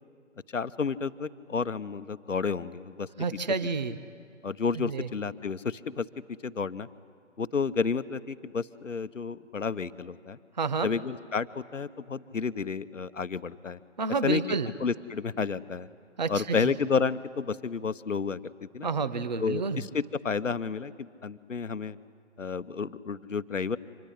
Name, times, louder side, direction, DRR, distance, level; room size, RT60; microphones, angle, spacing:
voice 1, 0.5-3.1 4.4-6.0 6.4-6.9 7.4-10.4 10.8-13.8 14.2-15.9 16.3-18.9 19.4-22.0 22.4-23.8, left 5 dB, 70° left, 14 dB, 0.9 m, -31 dB
voice 2, 3.2-4.0 4.7-5.1 10.6-10.9 14.0-14.7 16.2-16.7 18.8-19.8, right 4 dB, 35° right, 14 dB, 0.7 m, -29 dB
25.5 x 20.0 x 9.9 m, 2.4 s
figure-of-eight pair, 150°, 39 cm